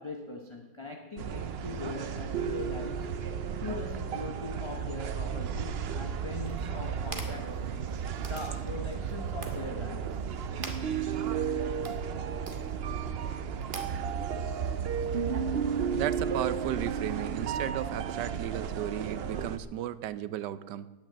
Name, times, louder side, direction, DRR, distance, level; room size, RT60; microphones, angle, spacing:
voice 1, 0.0-3.1 3.6-7.6 8.3-10.2, left 3 dB, 20° left, 3 dB, 0.8 m, -41 dB
sound 1, 1.2-19.6, right 7 dB, 65° right, 0.6 m, -33 dB
sound 2, 6.4-15.4, right 3 dB, 35° right, 1.5 m, -48 dB
voice 2, 16.0-20.9, right 11 dB, 90° right, 15 dB, 1.3 m, -35 dB
10.5 x 9.1 x 8.6 m, 1.2 s
omnidirectional pair, 1.8 m